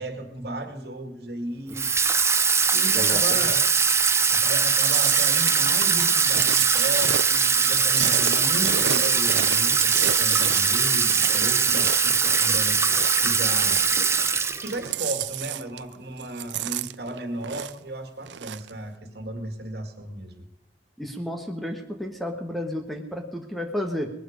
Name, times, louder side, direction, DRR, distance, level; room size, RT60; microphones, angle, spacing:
voice 1, 0.0-1.9 2.7-3.7 4.3-13.8 14.6-20.4, right 1 dB, 60° right, 6 dB, 2.2 m, -35 dB
Water tap faucet / Sink (filling or washing), 1.7-14.9, right 5 dB, 15° right, 0.7 m, -21 dB
voice 2, 2.9-3.5 21.0-24.1, left 1 dB, ahead, 3 dB, 1.4 m, -32 dB
Chewing mastication, 4.8-13.3 13.6-14.5 14.8-15.9 16.2-17.9 18.2-18.7, right 11 dB, 80° right, 0.5 m, -31 dB
20.0 x 12.5 x 5.2 m, 0.88 s
head